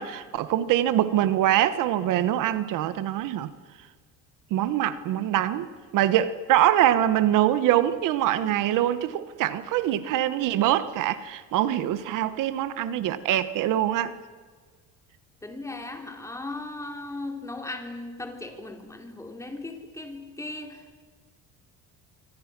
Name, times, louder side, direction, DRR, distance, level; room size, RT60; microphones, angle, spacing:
voice 1, 0.0-3.5 4.5-5.7 5.9-14.1, right 12 dB, 65° right, 13 dB, 1.3 m, -24 dB
voice 2, 15.4-21.0, left 2 dB, 10° left, 4 dB, 3.2 m, -37 dB
27.0 x 25.0 x 6.1 m, 1.5 s
cardioid pair, 145°, 34 cm